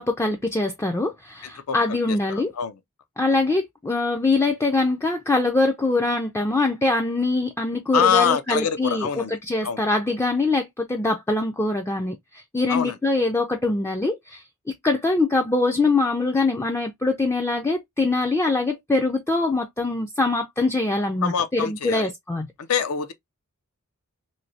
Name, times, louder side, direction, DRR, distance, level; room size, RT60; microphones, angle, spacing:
voice 1, 0.0-2.5 3.2-22.5, left 2 dB, 10° left, 0.3 m, -23 dB
voice 2, 1.7-2.0 2.3-2.8 7.9-9.4 9.6-9.8 12.7-13.0 21.2-22.1 22.7-23.1, left 7 dB, 70° left, 0.5 m, -24 dB
3.1 x 2.6 x 2.6 m
head